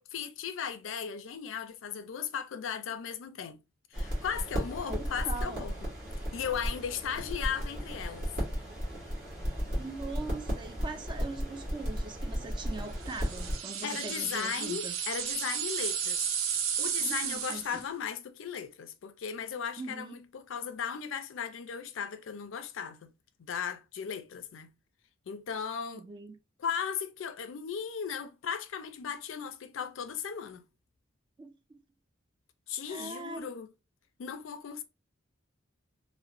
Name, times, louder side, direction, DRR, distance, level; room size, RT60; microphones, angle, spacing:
voice 1, 0.0-3.6 3.9-5.7 6.3-8.3 13.8-23.1 23.4-24.7 25.3-26.0 26.6-30.6 32.7-33.7 34.2-34.8, left 7 dB, 70° left, 0.4 m, -37 dB
sound 1, 3.9-13.6, equal, 45° right, 1.4 m, -35 dB
voice 2, 4.7-5.7 9.8-14.9 17.0-17.8 19.8-20.2 25.9-26.4 31.4-31.8 32.9-33.5, right 3 dB, 25° right, 0.3 m, -41 dB
sound 2, 13.0-17.9, right 7 dB, 90° right, 0.5 m, -33 dB
2.8 x 2.0 x 2.5 m
head